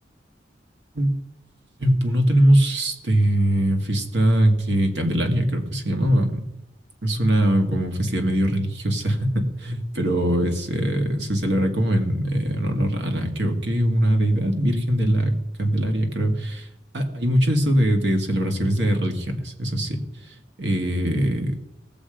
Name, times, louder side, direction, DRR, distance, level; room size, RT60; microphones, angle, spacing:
voice 1, 1.8-6.4 7.0-16.7 16.9-20.0 20.2-21.6, right 1 dB, 75° right, 4 dB, 2.1 m, -22 dB
19.0 x 7.4 x 5.1 m, 0.89 s
head